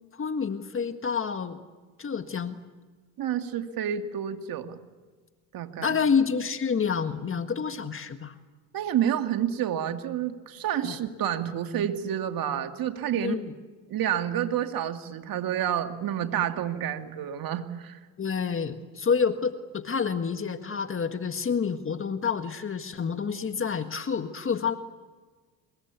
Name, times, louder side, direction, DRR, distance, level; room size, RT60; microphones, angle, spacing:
voice 1, 0.1-1.6 2.0-2.6 5.8-8.3 10.8-11.0 13.2-13.5 18.2-24.7, left 6 dB, 30° left, 8 dB, 1.7 m, -28 dB
voice 2, 3.2-4.8 5.5-5.9 8.7-13.4 13.9-18.0, right 10 dB, 55° right, 7 dB, 2.4 m, -29 dB
25.5 x 22.5 x 8.4 m, 1.4 s
supercardioid pair, 80°, 41 cm